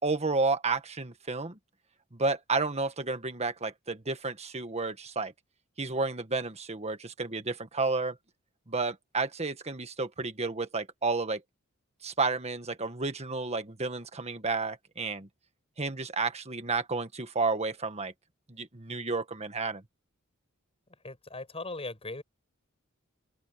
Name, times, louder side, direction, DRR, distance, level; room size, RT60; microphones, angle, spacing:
voice 1, 0.0-1.6 2.1-5.3 5.8-8.2 8.7-11.4 12.0-15.3 15.8-18.1 18.5-19.8, right 3 dB, 30° right, 1.7 m, -31 dB
voice 2, 21.0-22.2, left 2 dB, 30° left, 6.4 m, -38 dB
open air
head